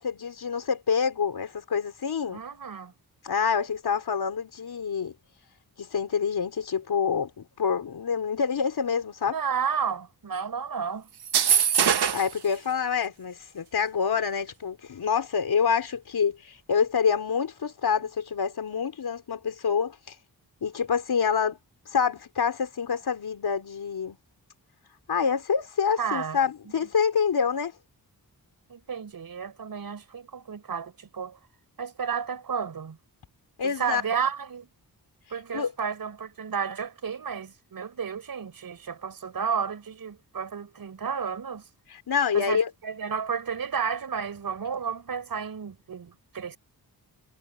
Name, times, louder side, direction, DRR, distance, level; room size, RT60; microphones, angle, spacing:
voice 1, 0.0-2.4 3.2-5.1 5.8-9.4 12.1-20.1 20.6-21.6 21.9-24.2 25.1-27.7 33.6-34.0 35.5-35.7 41.9-42.7, left 6 dB, 75° left, 4.3 m, -27 dB
voice 2, 2.3-2.9 9.3-11.1 26.0-26.4 28.7-31.4 31.8-33.0 33.6-34.7 35.3-41.6 42.3-46.6, right 6 dB, 65° right, 5.8 m, -32 dB
sound 1, 11.2-12.4, right 8 dB, 90° right, 1.4 m, -22 dB
wide cardioid pair, 165°, 38 cm